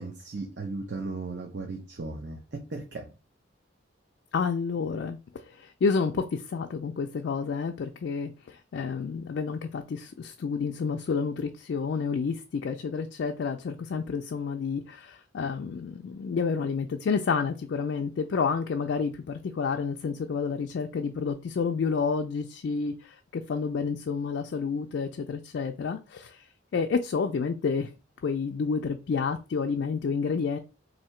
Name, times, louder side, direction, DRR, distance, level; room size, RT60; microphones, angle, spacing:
voice 1, 0.0-2.4 2.7-3.1, right 3 dB, 60° right, 0.6 m, -36 dB
voice 2, 4.3-5.2 5.5-26.4 26.7-27.9 28.2-30.6, left 5 dB, 65° left, 0.3 m, -29 dB
2.8 x 2.7 x 4.3 m
head